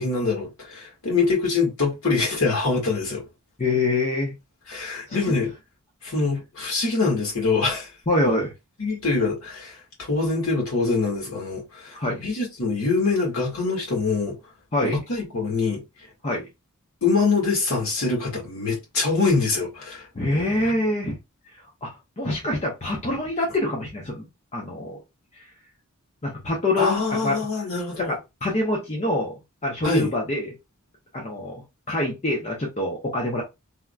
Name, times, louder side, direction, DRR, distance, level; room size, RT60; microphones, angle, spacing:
voice 1, 0.0-3.2 4.7-5.5 6.0-7.9 8.8-9.8 10.1-14.4 14.8-15.8 17.0-20.0 20.6-20.7 26.8-28.1 29.8-30.1, left 4 dB, 65° left, 1.7 m, -24 dB
voice 2, 3.6-4.3 5.1-5.4 8.1-8.5 11.9-12.2 14.7-15.0 16.2-16.5 20.1-21.2 21.8-21.9 22.2-24.2 24.5-25.0 25.4-25.5 26.2-27.5 28.0-30.5 31.1-33.4, left 2 dB, 30° left, 0.8 m, -25 dB
3.5 x 2.8 x 2.3 m
head